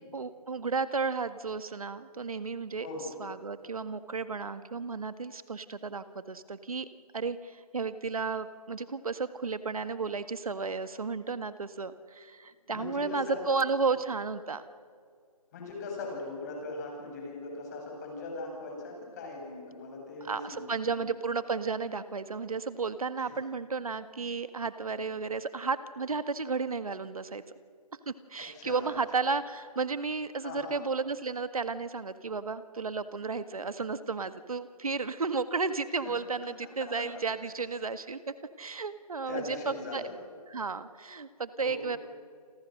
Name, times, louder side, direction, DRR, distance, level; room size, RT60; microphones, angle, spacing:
voice 1, 0.1-2.9 3.2-6.9 7.1-14.6 20.2-27.4 28.1-38.2 38.6-40.0 40.5-42.0, right 4 dB, 65° right, 11 dB, 1.7 m, -33 dB
voice 2, 12.7-13.5 15.5-21.1 23.2-23.3 28.4-28.9 30.4-30.8 36.1-36.2 36.8-36.9 39.3-40.1 41.6-41.9, left 3 dB, 25° left, 0 dB, 7.9 m, -40 dB
29.5 x 25.0 x 6.6 m, 2.1 s
figure-of-eight pair, 155°, 20 cm